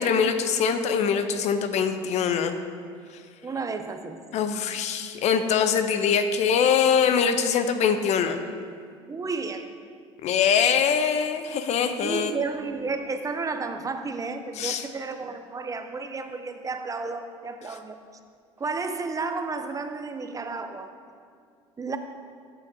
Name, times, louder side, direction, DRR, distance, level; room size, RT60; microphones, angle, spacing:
voice 1, 0.0-2.5 4.3-8.4 10.2-12.3 14.6-14.8, left 7 dB, 55° left, 9 dB, 0.6 m, -23 dB
voice 2, 3.4-4.2 9.1-9.7 11.9-18.0 18.6-20.9 21.8-22.0, right 4 dB, 25° right, 7 dB, 0.6 m, -32 dB
12.5 x 5.9 x 2.7 m, 2.2 s
supercardioid pair, 80°, 14 cm